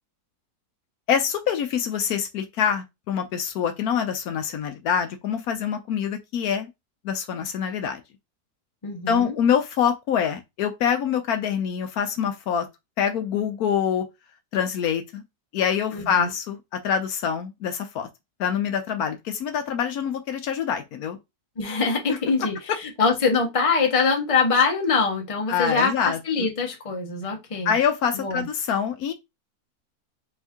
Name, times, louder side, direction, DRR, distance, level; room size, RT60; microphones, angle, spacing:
voice 1, 1.1-6.7 7.0-8.0 9.1-12.7 13.0-14.1 14.5-15.2 15.5-18.1 18.4-21.2 25.5-26.5 27.6-29.1, left 8 dB, 75° left, 1.1 m, -25 dB
voice 2, 8.8-9.3 15.9-16.3 21.6-27.8 28.1-28.5, left 4 dB, 25° left, 0.8 m, -24 dB
4.4 x 2.6 x 3.5 m
omnidirectional pair, 1.7 m